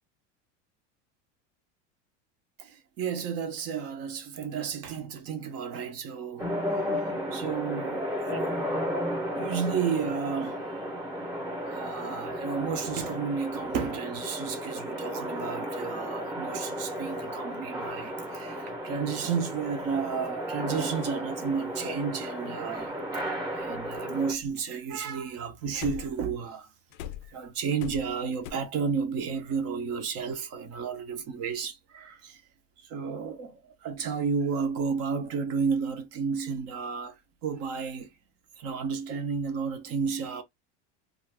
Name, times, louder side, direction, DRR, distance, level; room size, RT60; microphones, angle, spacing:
voice 1, 2.6-6.5 7.3-8.6 9.4-10.7 11.7-22.9 23.5-26.7 27.3-32.4 32.8-38.1 38.6-40.4, right 6 dB, 40° right, 0.7 m, -32 dB
sound 1, 6.4-24.3, equal, 10° right, 0.8 m, -34 dB
sound 2, 22.8-22.9 25.7-26.3 26.9-28.5, left 11 dB, 65° left, 0.5 m, -40 dB
2.5 x 2.4 x 3.3 m
supercardioid pair, 150°, 36 cm